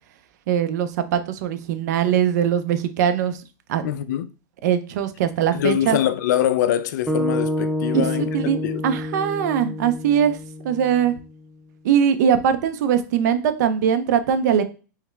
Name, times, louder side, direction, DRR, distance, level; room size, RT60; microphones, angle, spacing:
voice 1, 0.5-3.4 3.7-3.8 4.6-6.0 7.9-10.4 10.6-11.1 11.8-14.6, right 8 dB, 60° right, 0.6 m, -21 dB
voice 2, 3.8-4.3 5.5-8.3 8.6-8.8, left 11 dB, 65° left, 0.4 m, -23 dB
sound 1, 7.1-11.3, left 1 dB, 5° right, 0.4 m, -28 dB
3.5 x 3.2 x 3.4 m
hypercardioid pair, 135°, 10 cm